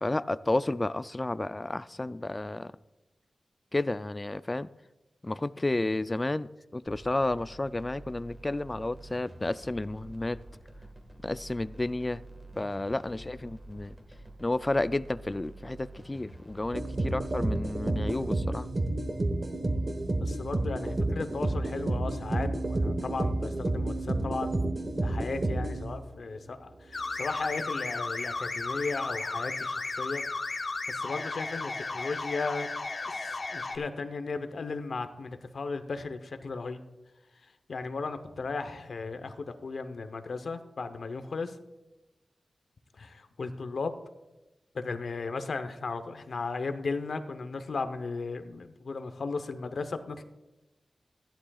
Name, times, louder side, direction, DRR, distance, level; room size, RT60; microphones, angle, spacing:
voice 1, 0.0-2.7 3.7-4.7 5.2-10.4 11.2-12.2 12.6-14.0 14.4-18.7, left 2 dB, 20° left, 0.3 m, -31 dB
sound 1, 6.9-18.2, right 1 dB, 20° right, 1.6 m, -48 dB
sound 2, 16.7-26.2, right 2 dB, 40° right, 1.2 m, -30 dB
voice 2, 20.2-24.6 25.0-32.7 33.1-33.2 33.5-36.8 37.7-41.6 43.0-43.9 44.7-50.2, left 4 dB, 70° left, 0.8 m, -36 dB
sound 3, 26.9-33.8, left 3 dB, 50° left, 1.1 m, -34 dB
16.0 x 11.5 x 2.4 m
wide cardioid pair, 120°, 0 cm